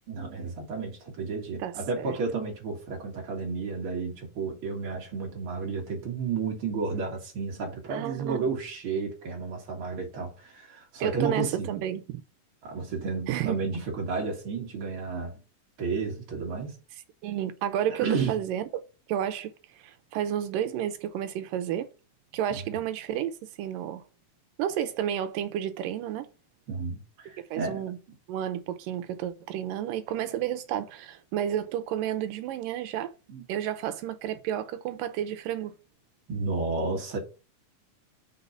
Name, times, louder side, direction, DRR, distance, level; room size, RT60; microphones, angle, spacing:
voice 1, 0.1-11.8 12.6-15.4 15.8-16.8 17.9-18.4 22.5-22.8 26.7-27.9 33.3-33.4 36.3-37.2, right 4 dB, 45° right, 2.0 m, -32 dB
voice 2, 1.6-2.2 7.9-8.5 11.0-12.2 13.3-13.6 17.2-18.8 19.1-21.9 22.3-24.0 24.6-26.3 27.5-28.0 28.3-33.1 33.5-35.8, right 10 dB, 80° right, 2.3 m, -31 dB
5.4 x 4.1 x 5.6 m
omnidirectional pair, 4.1 m